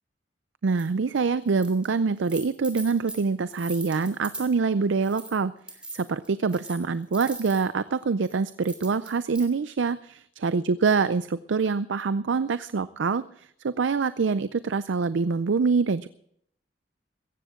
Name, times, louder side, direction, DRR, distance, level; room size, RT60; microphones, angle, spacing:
voice 1, 0.6-5.5 5.9-16.1, right 4 dB, 80° right, 14 dB, 0.5 m, -25 dB
sound 1, 0.8-0.9 1.5-1.9 2.2-4.5 5.0-5.4 5.7-7.6 8.2-9.4, right 2 dB, 5° right, 3.1 m, -41 dB
17.0 x 15.0 x 3.7 m, 0.69 s
head